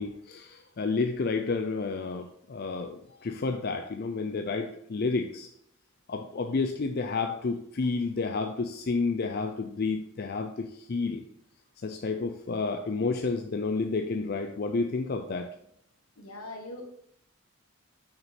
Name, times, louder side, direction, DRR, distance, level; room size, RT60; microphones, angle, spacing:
voice 1, 0.0-5.5 6.1-11.2 11.8-15.5, left 4 dB, 45° left, 6 dB, 0.4 m, -30 dB
voice 2, 16.2-16.9, left 2 dB, 75° left, 2 dB, 1.5 m, -41 dB
6.3 x 5.9 x 4.2 m, 0.71 s
head